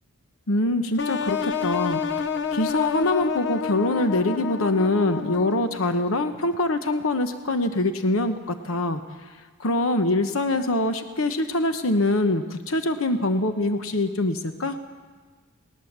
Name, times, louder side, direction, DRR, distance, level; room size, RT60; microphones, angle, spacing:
voice 1, 0.5-2.2 2.5-9.0 9.6-14.8, left 2 dB, 75° left, 8 dB, 1.0 m, -24 dB
sound 1, 1.0-5.8, left 6 dB, 55° left, 0.6 m, -29 dB
19.5 x 19.5 x 7.4 m, 1.4 s
head